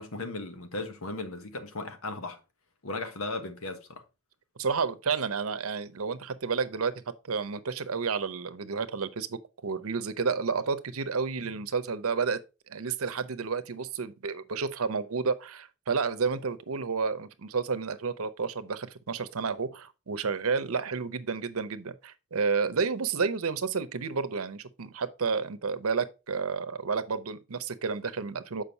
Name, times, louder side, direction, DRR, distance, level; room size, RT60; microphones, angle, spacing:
voice 1, 0.0-2.4 2.8-4.0, left 2 dB, 85° left, 1.3 m, -36 dB
voice 2, 4.6-12.4 12.7-28.6, right 5 dB, 90° right, 0.8 m, -31 dB
7.1 x 5.2 x 3.9 m
head